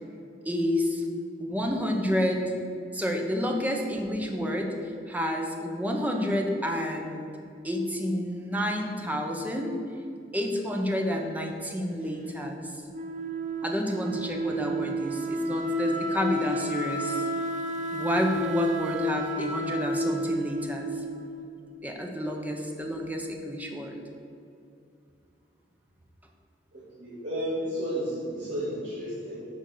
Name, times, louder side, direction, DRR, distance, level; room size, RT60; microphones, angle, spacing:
voice 1, 0.4-1.0 1.4-2.5 2.9-7.4 7.6-9.8 10.3-12.7 13.6-17.2 17.9-20.9 21.8-24.0, equal, 10° right, 2 dB, 0.9 m, -29 dB
Wind instrument woodwind instrument, 12.9-21.6, equal, 45° right, 0.7 m, -32 dB
voice 2, 26.7-29.4, equal, 80° right, -9 dB, 2.1 m, -32 dB
10.0 x 4.1 x 6.6 m, 2.5 s
head